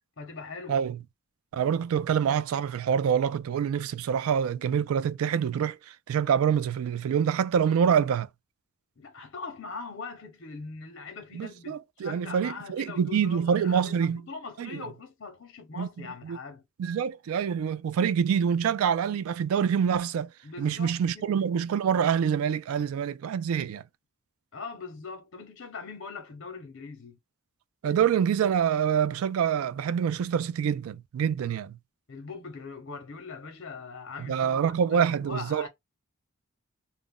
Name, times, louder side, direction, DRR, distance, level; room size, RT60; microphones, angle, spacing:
voice 1, 0.2-0.8 9.0-16.6 20.4-21.4 24.5-27.2 32.1-35.7, left 4 dB, 60° left, 0.8 m, -41 dB
voice 2, 1.5-8.3 11.3-14.2 14.6-14.8 15.8-15.9 16.2-16.4 16.8-20.3 20.6-23.8 27.8-31.8 34.2-35.7, right 7 dB, 90° right, 0.3 m, -26 dB
2.4 x 2.0 x 3.5 m
head